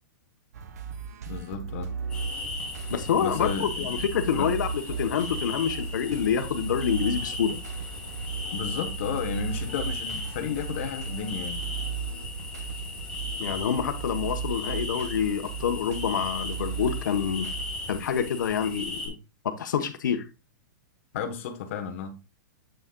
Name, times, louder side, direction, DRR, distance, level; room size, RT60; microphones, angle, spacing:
sound 1, 0.5-18.0, right 6 dB, 55° right, 0.9 m, -36 dB
voice 1, 1.3-1.9 3.2-3.9 4.4-4.5 8.5-11.6 21.1-22.2, left 7 dB, 40° left, 1.0 m, -33 dB
sound 2, 2.1-19.1, left 2 dB, 5° left, 1.1 m, -37 dB
voice 2, 2.9-7.6 13.4-17.5 17.9-19.2 19.4-20.3, left 7 dB, 70° left, 1.0 m, -27 dB
7.9 x 6.3 x 2.3 m
supercardioid pair, 180°, 11 cm